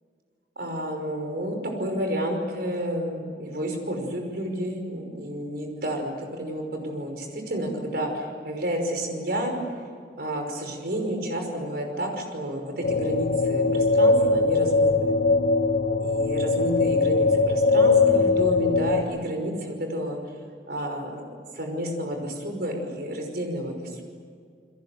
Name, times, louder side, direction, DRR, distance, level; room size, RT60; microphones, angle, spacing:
voice 1, 0.6-9.5 10.2-15.2 16.0-20.2 20.7-21.2 21.5-24.0, right 1 dB, 60° right, 3 dB, 5.6 m, -30 dB
sound 1, 12.8-19.0, left 3 dB, 60° left, 1.3 m, -21 dB
30.0 x 22.5 x 8.0 m, 2.2 s
head